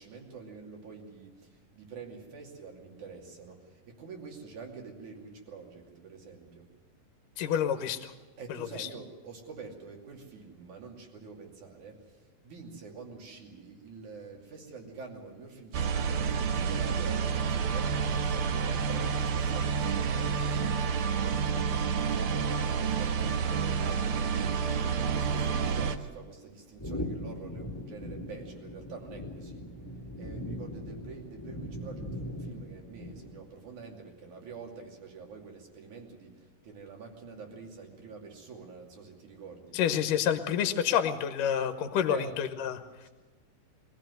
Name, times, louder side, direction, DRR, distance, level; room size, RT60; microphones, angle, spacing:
voice 1, 0.0-6.7 8.4-29.7 30.2-39.8 42.1-42.4 43.0-43.1, right 5 dB, 65° right, 1 dB, 4.1 m, -46 dB
voice 2, 7.4-8.1 8.5-8.9 39.7-42.8, left 9 dB, 80° left, 8 dB, 2.6 m, -28 dB
sound 1, 15.7-26.0, right 6 dB, 85° right, 1.2 m, -29 dB
sound 2, 26.8-33.6, left 1 dB, 10° left, 1.3 m, -40 dB
23.0 x 15.5 x 7.9 m, 1.3 s
omnidirectional pair, 3.8 m